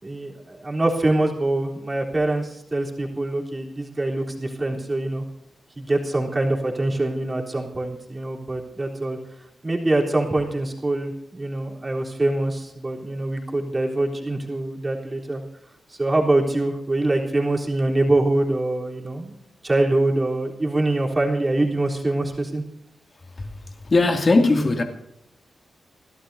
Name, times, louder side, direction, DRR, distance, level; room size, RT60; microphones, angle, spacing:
voice 1, 0.0-5.2 5.8-9.2 9.6-15.4 15.9-19.3 19.6-22.6, right 2 dB, 25° right, 3.8 m, -24 dB
voice 2, 23.4-24.8, left 3 dB, 40° left, 2.7 m, -20 dB
30.0 x 13.0 x 2.8 m
cardioid pair, 85°, 0 cm